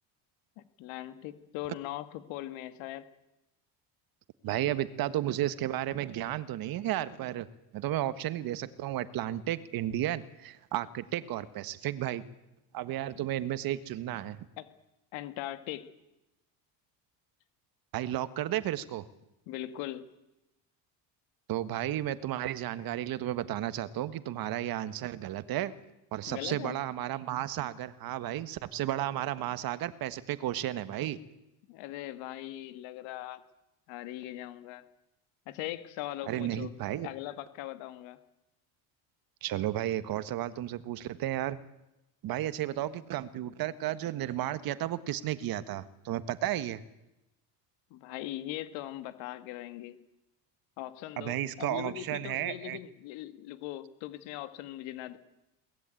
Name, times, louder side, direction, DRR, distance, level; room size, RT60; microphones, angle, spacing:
voice 1, 0.6-3.1 4.7-4.8 13.2-13.3 14.6-14.7 15.1-15.9 19.5-20.1 26.3-26.8 31.7-33.4 33.9-34.8 35.5-36.7 37.0-38.2 47.9-50.0 50.8-55.2, left 14 dB, 85° left, 11 dB, 1.9 m, -40 dB
voice 2, 4.4-7.5 7.7-12.2 12.7-14.4 17.9-19.0 21.5-25.7 26.1-31.2 36.3-37.1 39.4-41.6 42.2-46.8 51.2-52.8, right 13 dB, 50° right, 13 dB, 1.4 m, -33 dB
22.5 x 19.5 x 9.0 m, 0.92 s
cardioid pair, 155°, 44 cm